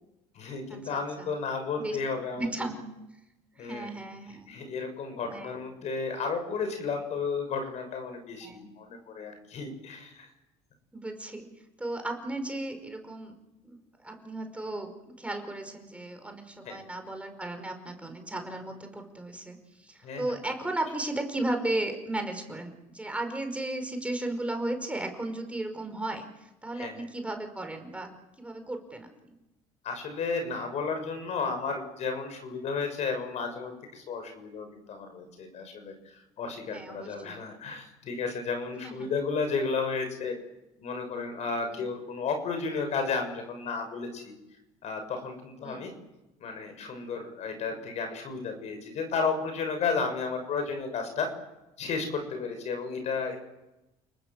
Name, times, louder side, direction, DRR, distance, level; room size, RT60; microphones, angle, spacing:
voice 1, 0.3-2.7 3.5-4.0 4.5-10.3 16.6-16.9 20.0-20.5 26.7-27.0 29.8-40.4 40.8-44.3 44.8-45.9 46.4-51.3 51.8-53.4, left 4 dB, 60° left, 6 dB, 6.8 m, -33 dB
voice 2, 0.9-1.3 1.8-2.0 2.4-2.8 3.6-4.5 5.2-5.6 8.4-8.7 10.9-11.5 11.8-13.4 13.6-28.1 28.4-29.3 36.7-37.4 38.8-39.1 41.7-41.9 45.6-45.9, right 2 dB, 10° right, 5 dB, 5.1 m, -35 dB
30.0 x 19.5 x 7.5 m, 0.96 s
supercardioid pair, 90°, 13 cm